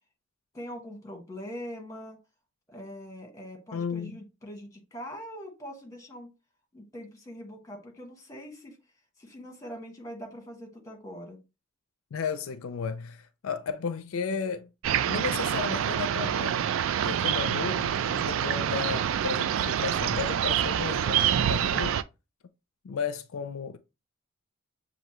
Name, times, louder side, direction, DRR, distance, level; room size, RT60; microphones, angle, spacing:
voice 1, 0.5-2.2 2.7-6.3 6.7-8.8 9.2-11.4, equal, 15° left, 1.4 m, -42 dB
voice 2, 3.7-4.1 12.1-14.7 15.1-16.7 17.0-22.0 22.8-23.8, left 6 dB, 80° left, 0.4 m, -34 dB
sound 1, 14.8-22.0, right 9 dB, 70° right, 0.3 m, -27 dB
6.5 x 2.6 x 2.9 m
head